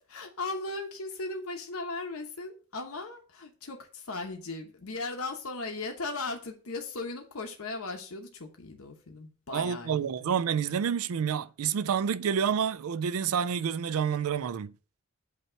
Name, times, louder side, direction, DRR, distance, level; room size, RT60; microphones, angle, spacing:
voice 1, 0.0-10.3, left 3 dB, 75° left, 1.0 m, -37 dB
voice 2, 9.5-14.7, right 7 dB, 80° right, 0.4 m, -28 dB
8.3 x 2.9 x 4.4 m
head